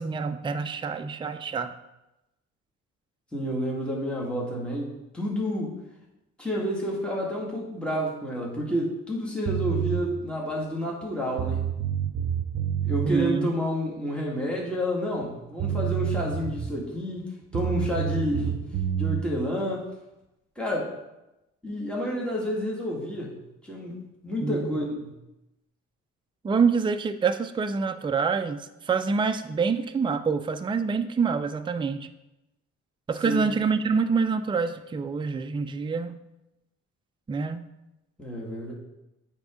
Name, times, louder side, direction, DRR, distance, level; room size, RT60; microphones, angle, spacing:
voice 1, 0.0-1.7 13.0-13.5 24.4-24.8 26.4-32.1 33.1-36.2 37.3-37.7, right 5 dB, 15° right, 8 dB, 0.4 m, -26 dB
voice 2, 3.3-5.8 6.4-11.6 12.8-17.3 17.5-18.6 18.9-19.8 20.6-20.9 21.6-23.4 23.6-24.0 24.2-25.1 33.2-33.5 38.2-38.7, equal, 5° left, -4 dB, 1.9 m, -29 dB
sound 1, 9.5-10.0 11.0-11.1 11.4-13.1 15.2-15.3 15.6-16.8 17.5-19.2, right 9 dB, 55° right, 0.7 m, -28 dB
8.2 x 3.6 x 5.0 m, 0.94 s
cardioid pair, 90°, 30 cm